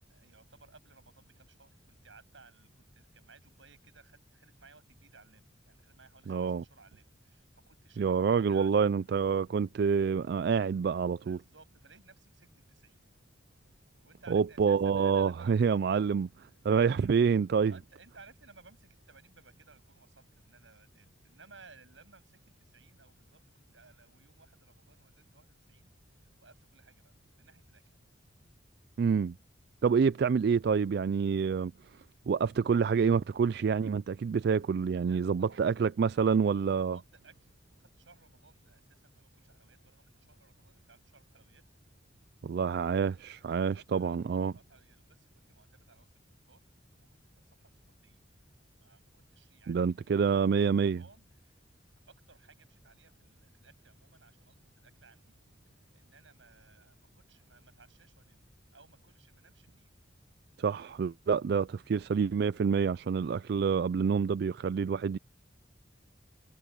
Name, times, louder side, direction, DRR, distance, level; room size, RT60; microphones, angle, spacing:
voice 1, 0.1-8.9 11.2-13.0 14.0-15.6 15.9-16.1 17.6-23.4 23.7-25.9 26.2-27.9 35.0-35.6 36.7-37.5 37.8-41.6 43.7-46.1 46.5-46.6 46.9-47.1 47.5-47.7 48.0-48.2 48.8-51.6 52.1-55.3 55.9-58.4 58.7-59.9, right 4 dB, 85° right, 7.4 m, -59 dB
voice 2, 6.3-6.6 8.0-11.4 14.3-16.3 16.6-17.7 29.0-29.3 29.8-31.7 32.3-37.0 42.4-44.5 49.7-51.0 60.6-65.2, right 6 dB, 60° right, 0.3 m, -27 dB
head